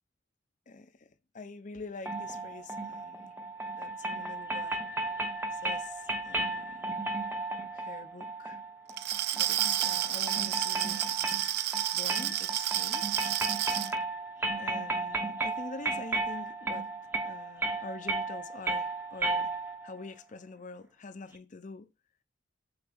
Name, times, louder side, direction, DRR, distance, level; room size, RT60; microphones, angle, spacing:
voice 1, 0.7-1.1 1.3-3.3 3.7-4.8 5.5-6.9 7.7-8.6 9.3-11.3 11.9-13.2 14.6-16.9 17.2-19.5 19.8-21.9, left 3 dB, 40° left, 0.5 m, -45 dB
sound 1, 2.1-19.9, right 2 dB, 10° right, 0.7 m, -34 dB
Glass, 8.9-13.9, right 13 dB, 55° right, 0.3 m, -30 dB
8.0 x 4.0 x 3.5 m
head